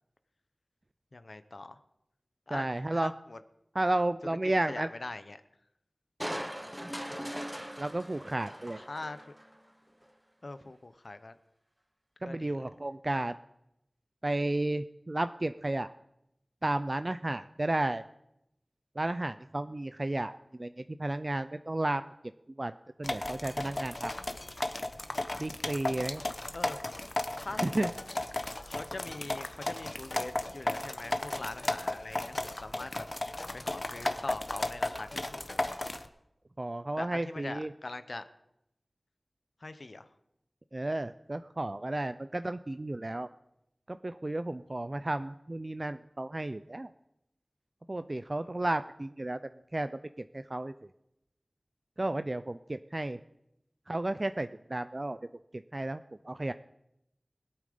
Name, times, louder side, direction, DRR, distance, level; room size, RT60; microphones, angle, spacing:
voice 1, 1.1-1.8 2.5-2.6 2.9-3.4 4.7-5.4 7.1-7.3 8.8-9.3 10.4-11.4 12.2-12.7 26.5-26.8 27.4-27.9 28.6-33.1 33.5-35.8 37.0-38.2 39.6-40.1 48.5-48.6, left 2 dB, 70° left, 11 dB, 0.8 m, -42 dB
voice 2, 2.5-3.1 3.7-4.9 7.8-8.8 12.2-13.4 14.2-15.9 16.6-18.0 19.0-20.7 21.0-22.0 22.6-22.7 23.0-24.1 25.4-26.2 27.6-27.9 36.6-37.7 40.7-43.3 43.9-46.9 47.9-49.4 49.7-49.9 50.2-50.7 52.0-53.2 53.9-55.2 55.7-56.0 56.3-56.5, right 1 dB, 45° right, 11 dB, 0.4 m, -32 dB
Crushing, 6.2-9.6 10.0-10.1, equal, 5° right, 1.0 m, -40 dB
sound 1, 23.0-36.1, left 2 dB, 45° left, 1.0 m, -35 dB
21.5 x 8.7 x 5.1 m, 0.84 s
wide cardioid pair, 50°, 0 cm